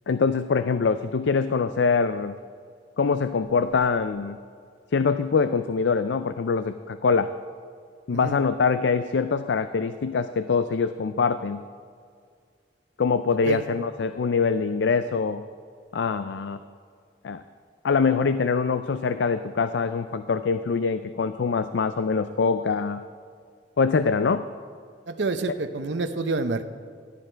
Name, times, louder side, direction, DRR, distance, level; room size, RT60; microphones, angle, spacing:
voice 1, 0.1-2.4 3.0-4.4 4.9-7.3 8.1-11.6 13.0-15.4 15.9-16.6 17.2-17.4 17.8-23.0 23.8-24.4, left 5 dB, 80° left, 11 dB, 0.4 m, -24 dB
voice 2, 13.3-13.6 25.1-26.7, right 3 dB, 85° right, 8 dB, 0.8 m, -28 dB
17.0 x 11.0 x 4.5 m, 2.1 s
head